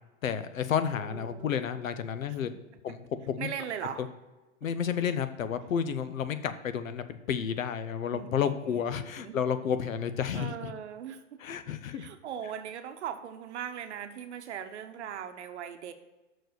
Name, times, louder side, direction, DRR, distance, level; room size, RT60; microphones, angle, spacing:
voice 1, 0.2-2.5 2.8-3.5 4.0-4.1 4.6-10.7 11.4-12.1, left 8 dB, 90° left, 11 dB, 0.8 m, -31 dB
voice 2, 1.0-1.6 2.4-2.6 3.4-4.1 8.1-9.4 10.3-11.4 11.9-15.9, right 8 dB, 60° right, 8 dB, 0.9 m, -39 dB
6.3 x 4.7 x 6.3 m, 1.1 s
hypercardioid pair, 145°, 39 cm